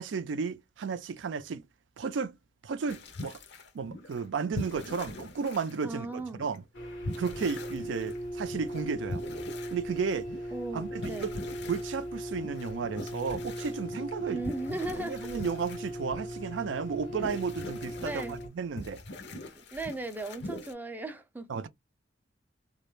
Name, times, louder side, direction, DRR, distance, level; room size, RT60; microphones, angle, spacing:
voice 1, 0.0-1.6 2.0-2.3 2.6-3.4 3.7-6.6 7.2-9.2 9.7-10.3 10.7-14.4 15.0-19.0 21.5-21.7, right 5 dB, 80° right, 0.4 m, -33 dB
sound 1, 2.9-4.2 4.5-6.6 7.0-16.3 17.0-18.5 18.8-20.7, left 1 dB, 65° left, 0.7 m, -42 dB
voice 2, 5.8-6.4 10.5-11.4 14.3-15.2 18.0-18.4 19.5-21.6, right 2 dB, 10° right, 0.4 m, -37 dB
sound 2, 6.7-18.5, equal, 85° left, 0.9 m, -39 dB
2.3 x 2.0 x 3.0 m
head